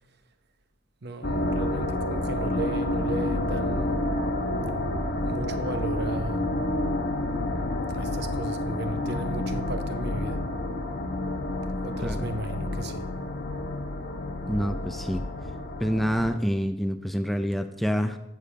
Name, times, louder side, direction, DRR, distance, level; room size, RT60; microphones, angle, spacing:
voice 1, 1.0-4.0 5.2-6.5 7.9-10.5 11.8-13.1, right 2 dB, 55° right, 0.9 m, -35 dB
sound 1, 1.2-16.4, left 1 dB, 55° left, 1.0 m, -29 dB
voice 2, 14.5-15.2 15.8-18.2, equal, ahead, 0.4 m, -27 dB
13.5 x 7.3 x 4.8 m
head